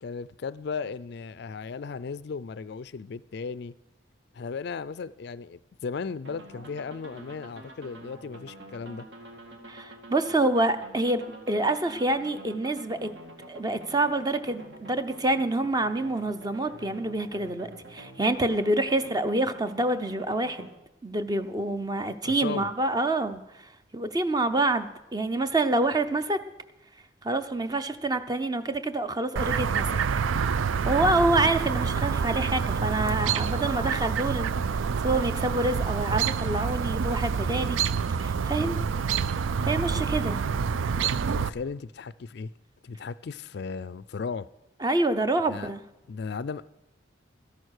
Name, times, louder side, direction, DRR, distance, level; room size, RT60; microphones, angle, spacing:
voice 1, 0.0-3.7 4.3-9.1 22.2-22.7 40.9-42.5 42.8-44.5 45.5-45.7 46.1-46.6, left 5 dB, 55° left, 0.4 m, -36 dB
sound 1, 6.2-20.7, right 1 dB, 65° right, 2.2 m, -47 dB
voice 2, 9.7-13.1 13.5-20.7 21.0-26.4 27.2-29.9 30.8-34.5 35.0-37.8 38.2-38.8 39.6-40.4 44.8-45.8, right 2 dB, 20° right, 0.7 m, -27 dB
Chirp tweet, 29.4-41.5, right 6 dB, 80° right, 0.4 m, -27 dB
13.0 x 11.0 x 6.5 m
head